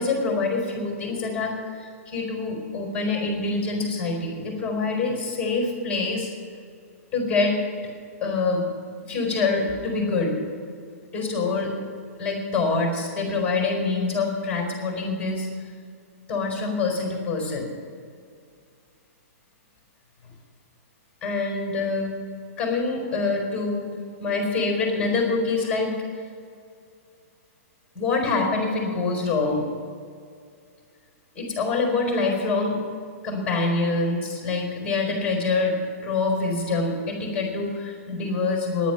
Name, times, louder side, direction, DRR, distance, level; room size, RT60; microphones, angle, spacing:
voice 1, 0.0-6.3 7.1-7.6 8.2-8.7 9.0-10.3 11.1-11.7 12.2-15.5 16.3-17.7 21.2-22.1 22.6-25.9 27.9-29.6 31.3-32.8 33.2-35.8 36.0-38.9, left 3 dB, 10° left, 1 dB, 4.3 m, -25 dB
11.0 x 9.2 x 8.9 m, 2.2 s
hypercardioid pair, 155°, 8 cm